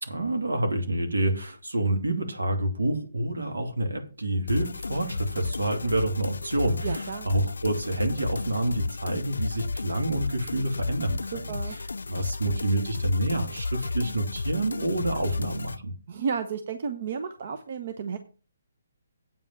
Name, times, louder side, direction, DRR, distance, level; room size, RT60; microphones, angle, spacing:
voice 1, 0.0-11.8 12.1-15.9, right 1 dB, 80° right, 4 dB, 2.6 m, -28 dB
sound 1, 4.5-15.8, left 3 dB, 75° left, 0.4 m, -33 dB
voice 2, 6.8-7.3 11.3-11.8 16.1-18.2, right 6 dB, 50° right, 7 dB, 1.0 m, -32 dB
8.8 x 5.5 x 7.3 m, 0.35 s
figure-of-eight pair, 140°, 0 cm